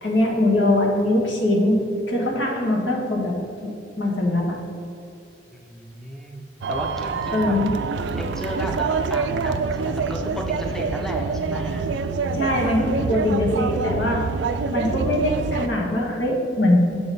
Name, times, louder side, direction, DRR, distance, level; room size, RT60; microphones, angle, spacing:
voice 1, 0.0-3.4 3.6-4.6 7.3-7.7 12.3-14.2 14.7-17.0, left 1 dB, 85° left, -1 dB, 1.4 m, -22 dB
voice 2, 5.5-7.5 8.2-11.9, equal, ahead, 1 dB, 0.6 m, -33 dB
sound 1, 6.6-15.7, right 4 dB, 70° right, 0.3 m, -26 dB
6.8 x 3.9 x 5.4 m, 2.5 s
head